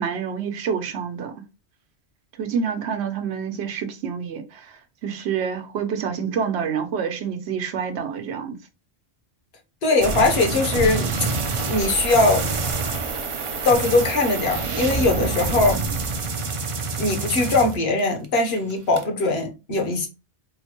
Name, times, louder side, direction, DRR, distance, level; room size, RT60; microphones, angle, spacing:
voice 1, 0.0-1.3 2.4-4.7 5.0-8.6, right 7 dB, 75° right, 0.9 m, -27 dB
voice 2, 9.8-11.1 11.7-12.5 13.6-15.8 17.0-20.1, left 3 dB, 70° left, 1.1 m, -21 dB
sound 1, 10.0-18.3 18.6-19.0, right 4 dB, 50° right, 0.4 m, -26 dB
3.8 x 2.1 x 2.9 m
omnidirectional pair, 1.1 m